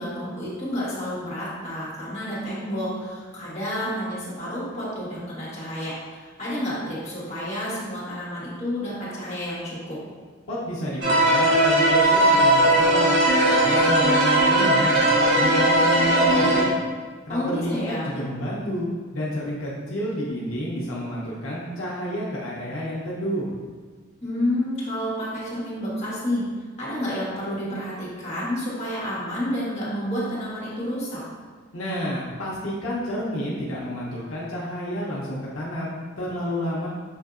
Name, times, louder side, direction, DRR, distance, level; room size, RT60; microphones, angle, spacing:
voice 1, 0.0-10.0 17.3-18.1 24.2-26.4 26.8-31.2, equal, 35° left, -8 dB, 1.4 m, -30 dB
voice 2, 10.5-13.2 13.5-16.7 17.3-18.9 19.1-23.5 31.7-36.9, equal, 90° left, -6 dB, 0.7 m, -30 dB
sound 1, 11.0-16.6, right 1 dB, 65° right, 1.1 m, -18 dB
5.5 x 2.7 x 2.4 m, 1.5 s
head